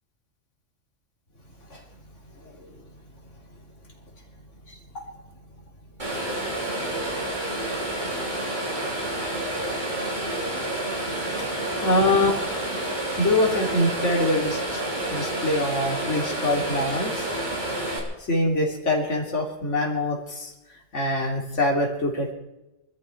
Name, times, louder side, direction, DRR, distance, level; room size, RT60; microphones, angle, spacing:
voice 1, 2.4-2.7 4.7-5.0 11.8-12.5 13.2-14.8 15.1-17.3 18.3-20.5 20.9-22.3, left 1 dB, 65° left, -1 dB, 3.4 m, -24 dB
sound 1, 6.0-18.0, right 1 dB, 35° right, 3.6 m, -29 dB
22.5 x 13.5 x 4.5 m, 0.97 s
omnidirectional pair, 1.3 m